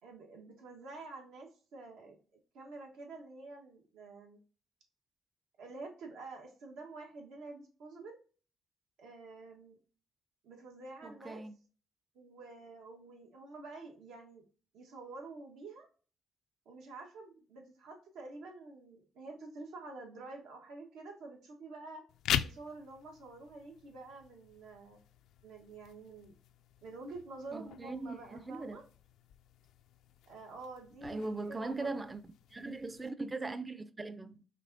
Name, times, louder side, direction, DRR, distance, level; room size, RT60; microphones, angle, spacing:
voice 1, 0.0-2.2 2.5-4.4 5.6-8.2 9.0-9.8 10.4-11.4 12.1-14.4 14.7-15.9 16.6-22.0 22.4-25.0 25.4-26.4 26.8-28.8 30.3-31.2 31.5-32.0, right 3 dB, 85° right, 1.4 m, -48 dB
voice 2, 11.0-11.5 27.5-28.8 31.0-32.2 32.5-34.5, right 3 dB, 20° right, 0.4 m, -40 dB
sound 1, 22.1-33.1, left 10 dB, 85° left, 0.3 m, -43 dB
5.2 x 3.4 x 2.7 m
cardioid pair, 90°, 0 cm